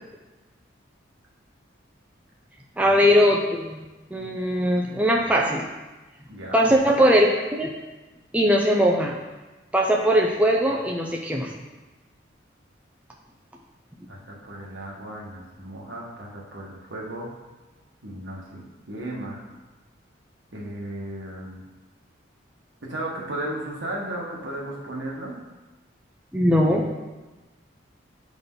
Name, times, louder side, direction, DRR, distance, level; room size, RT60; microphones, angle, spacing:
voice 1, 2.8-3.8 4.1-5.6 6.5-7.7 8.3-9.2 9.7-11.5 26.3-26.8, equal, 5° right, -1 dB, 0.5 m, -20 dB
voice 2, 14.1-17.3 18.0-19.4 20.5-21.6 22.8-25.3, right 1 dB, 75° right, -4 dB, 1.5 m, -35 dB
8.3 x 4.0 x 3.8 m, 1.2 s
head